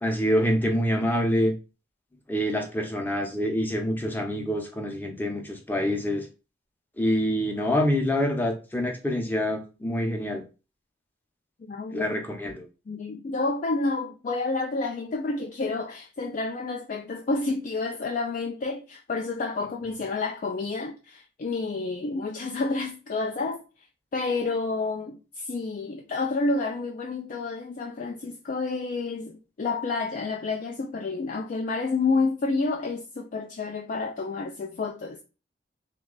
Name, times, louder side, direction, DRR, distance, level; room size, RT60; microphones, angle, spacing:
voice 1, 0.0-1.5 2.3-6.3 7.0-10.4 11.9-12.7, equal, 10° left, 0.7 m, -26 dB
voice 2, 11.7-12.1 12.9-23.6 24.1-35.2, left 3 dB, 45° left, 0.3 m, -29 dB
3.1 x 2.3 x 3.7 m
head